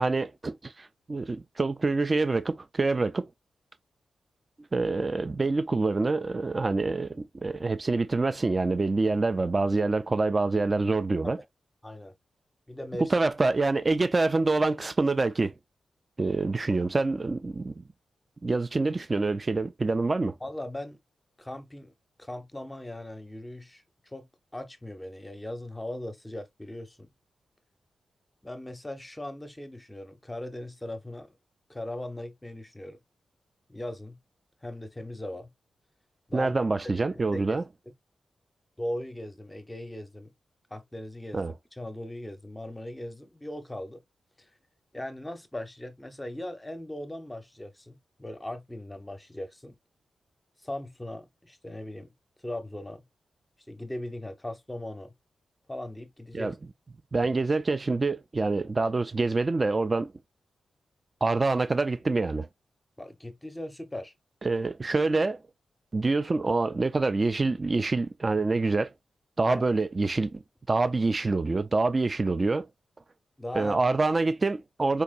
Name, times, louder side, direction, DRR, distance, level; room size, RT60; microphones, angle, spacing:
voice 1, 0.0-3.3 4.7-11.4 13.1-15.5 16.2-17.7 18.4-20.4 36.3-37.6 41.3-41.5 56.3-56.5 57.1-60.1 61.2-62.5 64.4-65.4 65.9-68.9 69.4-70.4 70.7-72.7 73.6-75.0, right 3 dB, 30° right, 0.3 m, -26 dB
voice 2, 11.8-12.1 12.7-13.1 20.4-21.0 21.4-21.9 22.2-24.3 24.5-27.1 28.4-31.4 31.7-33.0 33.7-34.2 34.6-35.5 36.3-36.5 37.3-37.6 38.8-40.3 40.7-44.0 44.4-44.5 44.9-49.8 50.6-52.1 52.4-53.0 53.7-55.1 55.7-56.5 63.0-64.1 69.5-69.7 73.4-73.8, left 1 dB, 10° left, 0.7 m, -39 dB
4.5 x 2.9 x 2.3 m
wide cardioid pair, 100°, 0 cm